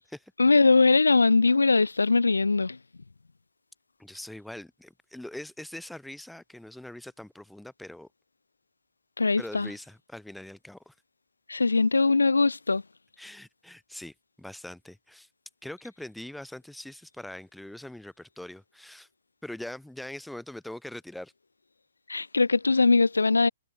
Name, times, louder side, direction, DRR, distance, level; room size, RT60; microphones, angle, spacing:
voice 1, 0.4-2.8 9.2-9.7 11.5-12.8 22.1-23.5, left 3 dB, 85° left, 0.5 m, -21 dB
voice 2, 4.0-8.1 9.4-10.9 13.2-15.3 15.6-19.1 19.4-21.3, left 1 dB, ahead, 1.6 m, -42 dB
figure-of-eight pair, 130°, 0 cm